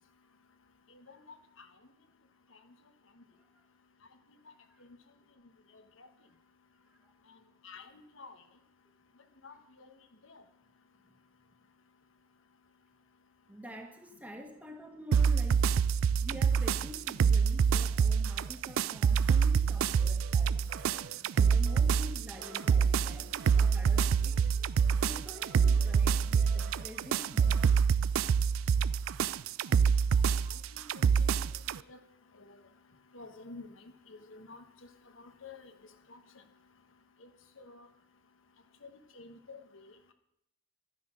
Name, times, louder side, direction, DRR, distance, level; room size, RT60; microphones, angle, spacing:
voice 1, 9.4-9.9 10.3-10.4 29.7-29.8 30.5-31.4 31.9-32.0 32.4-32.5 33.1-33.7 34.1-34.6 35.2-35.7 36.1-36.2 37.2-37.3 37.6-37.9 38.8-39.8, left 3 dB, 75° left, 8 dB, 1.2 m, -50 dB
voice 2, 13.5-15.8 16.2-20.6 21.3-24.5 25.0-27.8 30.8-30.9, left 1 dB, 10° right, 4 dB, 1.5 m, -48 dB
sound 1, 15.1-31.8, right 6 dB, 85° right, 0.4 m, -26 dB
sound 2, 20.0-27.7, right 2 dB, 55° right, 1.6 m, -52 dB
12.0 x 10.0 x 6.2 m, 0.77 s
head